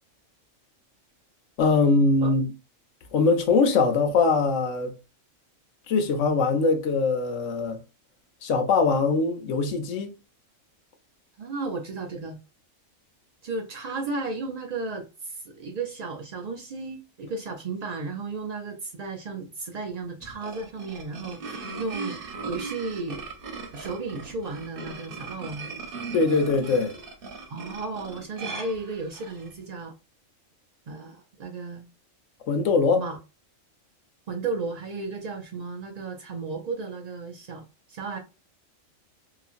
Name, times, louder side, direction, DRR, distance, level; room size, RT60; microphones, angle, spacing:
voice 1, 1.6-2.5 3.1-4.9 5.9-7.8 8.4-10.1 26.1-27.0 32.5-33.0, left 4 dB, 75° left, 1.0 m, -22 dB
voice 2, 11.4-12.4 13.4-23.2 23.7-25.7 27.5-29.9 30.9-31.8 32.9-33.2 34.3-38.2, right 3 dB, 90° right, 0.3 m, -34 dB
sound 1, 20.2-29.5, right 4 dB, 50° right, 0.8 m, -38 dB
2.9 x 2.4 x 2.4 m
omnidirectional pair, 1.4 m